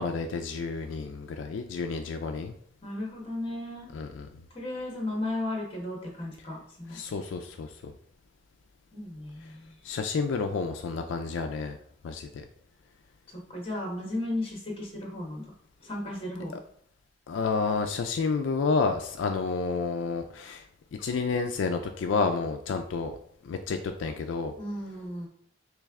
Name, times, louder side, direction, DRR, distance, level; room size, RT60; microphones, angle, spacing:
voice 1, 0.0-2.6 3.9-4.3 6.9-7.9 9.8-11.8 12.0-12.4 17.3-20.6 21.0-23.2 23.4-24.5, left 4 dB, 80° left, 6 dB, 0.3 m, -30 dB
voice 2, 2.8-3.9 4.5-7.0 8.9-9.7 13.3-15.4 15.8-16.6 24.6-25.3, left 1 dB, 30° left, -2 dB, 1.2 m, -35 dB
3.3 x 3.2 x 3.5 m, 0.62 s
head